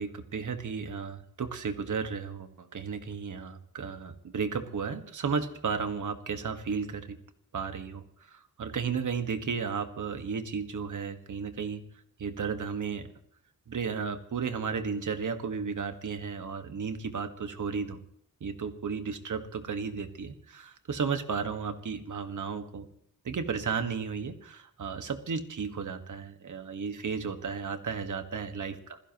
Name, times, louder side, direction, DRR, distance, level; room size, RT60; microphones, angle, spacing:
voice 1, 0.0-7.2 7.5-11.8 12.2-13.1 13.7-18.0 18.4-22.9 23.2-29.0, right 5 dB, 55° right, 8 dB, 1.7 m, -34 dB
26.5 x 16.0 x 3.1 m, 0.69 s
wide cardioid pair, 155°, 36 cm